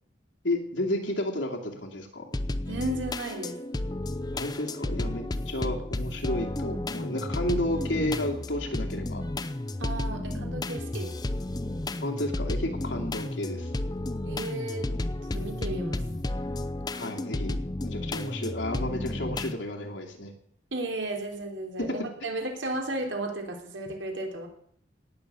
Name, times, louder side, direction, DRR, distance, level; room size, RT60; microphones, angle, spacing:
voice 1, 0.4-2.3 4.3-9.2 12.0-13.7 16.9-20.3 21.8-21.9, left 1 dB, 85° left, 1 dB, 2.6 m, -32 dB
sound 1, 2.3-19.5, left 1 dB, 20° left, 0.6 m, -32 dB
voice 2, 2.7-3.6 9.8-11.1 14.2-14.9 15.3-16.0 20.7-24.5, right 1 dB, 90° right, 2 dB, 3.5 m, -34 dB
18.0 x 6.9 x 8.3 m, 0.66 s
head